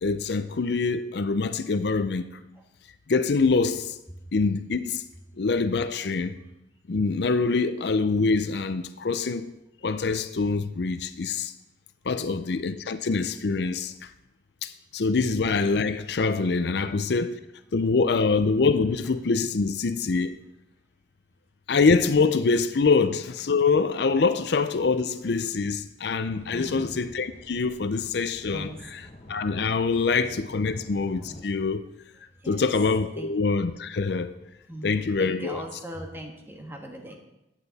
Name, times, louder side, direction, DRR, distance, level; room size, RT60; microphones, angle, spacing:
voice 1, 0.0-2.3 3.1-4.0 4.3-5.0 5.4-6.4 6.9-9.5 9.8-11.5 12.0-14.1 14.6-17.4 17.7-20.4 21.7-28.7 29.3-31.8 32.5-34.3 34.8-35.6, left 4 dB, 60° left, 0.5 m, -25 dB
voice 2, 12.1-12.5 26.5-26.9 28.5-28.8 32.4-32.7 33.2-33.3 34.7-37.2, right 1 dB, 10° right, 1.6 m, -39 dB
sound 1, 26.3-31.4, left 1 dB, 35° left, 1.0 m, -47 dB
14.5 x 9.1 x 4.1 m
head